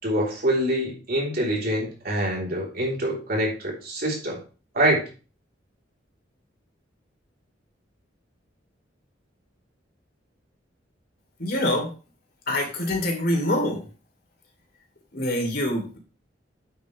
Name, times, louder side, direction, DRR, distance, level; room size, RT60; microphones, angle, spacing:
voice 1, 0.0-4.4 4.7-5.0, right 1 dB, 55° right, -2 dB, 3.4 m, -25 dB
voice 2, 11.4-11.9 12.5-13.8 15.1-16.0, left 1 dB, 55° left, 2 dB, 3.0 m, -25 dB
9.0 x 7.7 x 3.2 m, 0.35 s
head